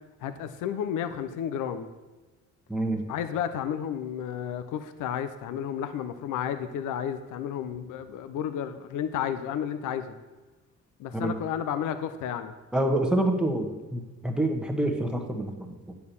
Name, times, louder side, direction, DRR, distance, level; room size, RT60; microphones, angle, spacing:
voice 1, 0.2-1.9 3.1-10.1 11.0-12.5, left 9 dB, 80° left, 10 dB, 0.6 m, -32 dB
voice 2, 2.7-3.0 11.1-11.3 12.7-15.9, right 1 dB, 5° right, 2 dB, 1.2 m, -27 dB
8.4 x 4.5 x 6.9 m, 1.2 s
cardioid pair, 90°, 30 cm